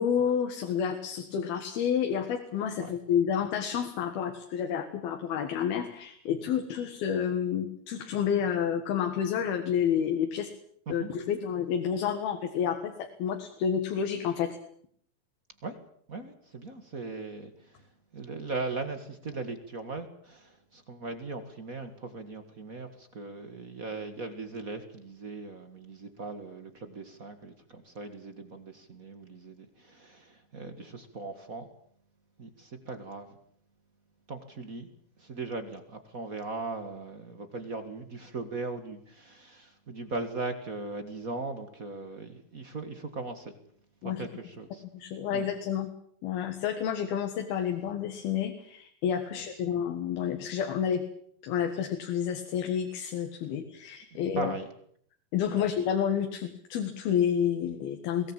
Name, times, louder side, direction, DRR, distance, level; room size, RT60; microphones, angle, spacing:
voice 1, 0.0-10.5 10.9-14.6 44.0-44.2 44.9-45.9 46.2-51.0 51.4-54.5 55.3-58.3, left 8 dB, 80° left, 5 dB, 3.6 m, -29 dB
voice 2, 16.1-17.5 18.1-31.7 32.4-33.4 34.3-34.9 35.2-43.5 44.0-44.8 45.3-45.5 49.3-49.8 54.3-54.7 55.5-55.7, right 3 dB, 40° right, 8 dB, 1.2 m, -39 dB
23.0 x 18.0 x 8.8 m, 0.65 s
omnidirectional pair, 4.3 m